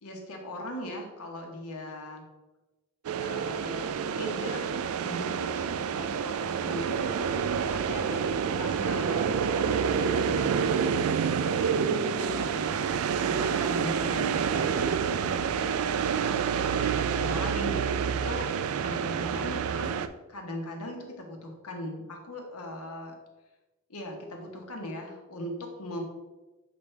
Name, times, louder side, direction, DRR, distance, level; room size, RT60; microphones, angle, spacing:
voice 1, 0.0-2.2 3.1-4.7 5.0-7.3 7.7-11.0 11.4-12.7 13.2-14.7 15.1-15.9 16.9-18.5 18.8-20.0 20.3-23.1 23.9-26.0, left 1 dB, 85° left, 2 dB, 1.2 m, -39 dB
sound 1, 3.0-20.1, right 7 dB, 70° right, 0.3 m, -28 dB
6.0 x 5.2 x 3.3 m, 1.2 s
head